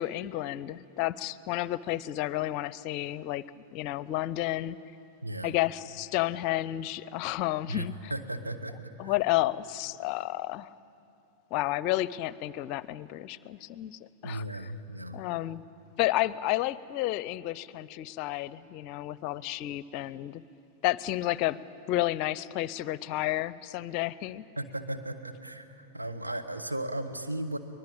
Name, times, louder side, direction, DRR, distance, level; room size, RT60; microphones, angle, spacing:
voice 1, 0.0-3.4 3.7-4.8 5.4-8.1 9.0-10.7 11.5-14.4 15.1-15.6 16.0-20.4 20.8-21.6 21.9-24.4, left 15 dB, 45° left, 19 dB, 0.6 m, -31 dB
voice 2, 5.2-5.6 7.7-9.2 14.2-15.2 24.6-27.6, right 1 dB, 85° right, 5 dB, 1.4 m, -36 dB
23.0 x 20.5 x 8.8 m, 2.8 s
figure-of-eight pair, 95°, 0 cm